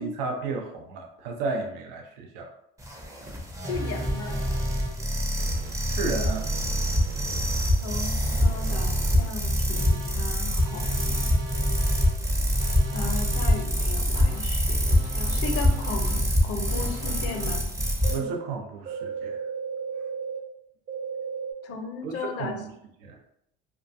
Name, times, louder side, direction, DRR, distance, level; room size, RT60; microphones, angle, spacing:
voice 1, 0.0-2.5 5.9-6.5 18.1-19.4 22.0-22.7 23.0-23.2, right 4 dB, 80° right, 2 dB, 0.5 m, -33 dB
sound 1, 2.8-18.2, equal, 10° right, 0.5 m, -25 dB
sound 2, 3.6-4.9 5.4-5.7 6.2-7.7 8.2-9.3 9.8-10.1 10.6-12.1 12.6-13.6 14.1-14.4 14.9-16.2 16.7-17.5 18.0-18.4 18.9-20.4 20.9-21.5, right 3 dB, 55° right, 1.0 m, -35 dB
voice 2, 3.7-4.4 7.8-11.3 12.9-17.7 18.1-18.3 21.6-22.6, left 4 dB, 50° left, 4 dB, 0.6 m, -36 dB
2.3 x 2.2 x 2.6 m, 0.77 s
hypercardioid pair, 65°, 30 cm